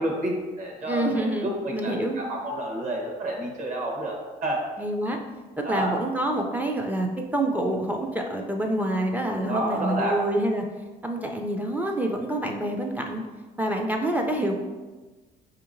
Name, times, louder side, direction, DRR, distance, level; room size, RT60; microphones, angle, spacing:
voice 1, 0.0-4.2 4.4-4.6 5.6-5.9 9.4-10.2, right 1 dB, 45° right, -1 dB, 1.1 m, -29 dB
voice 2, 0.8-2.2 4.8-5.2 5.6-10.6 11.0-13.2 13.6-14.5, right 1 dB, 10° right, 2 dB, 0.4 m, -27 dB
4.8 x 2.9 x 2.5 m, 1.3 s
cardioid pair, 110°, 17 cm